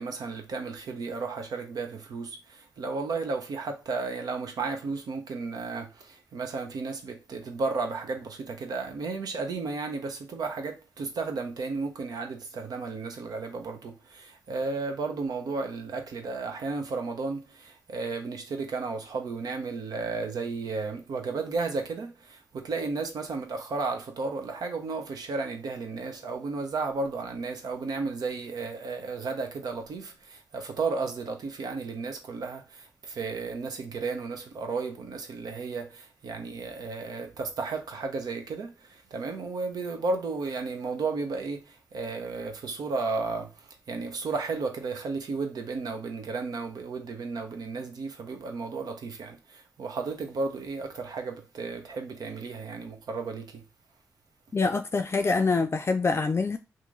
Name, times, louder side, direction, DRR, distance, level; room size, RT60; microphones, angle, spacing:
voice 1, 0.0-53.6, right 4 dB, 75° right, 0.8 m, -33 dB
voice 2, 54.5-56.6, left 4 dB, 40° left, 0.4 m, -25 dB
2.9 x 2.6 x 3.8 m
supercardioid pair, 45°, 7 cm